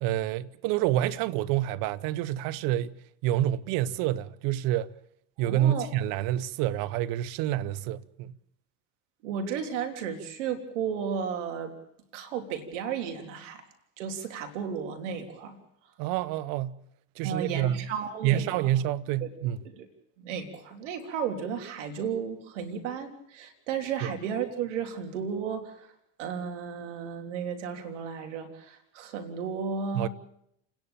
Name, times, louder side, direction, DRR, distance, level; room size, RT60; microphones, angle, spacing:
voice 1, 0.0-3.0 3.2-4.9 5.4-8.4 16.0-16.8 17.2-17.9 18.2-19.6 24.0-24.1 29.9-30.1, right 13 dB, 65° right, 1.0 m, -28 dB
voice 2, 5.4-5.9 9.2-11.7 12.1-13.6 14.0-15.6 17.2-18.7 19.2-19.3 19.8-19.9 20.2-25.9 26.2-30.1, right 7 dB, 80° right, 3.4 m, -34 dB
30.0 x 10.5 x 8.8 m
hypercardioid pair, 90°, 36 cm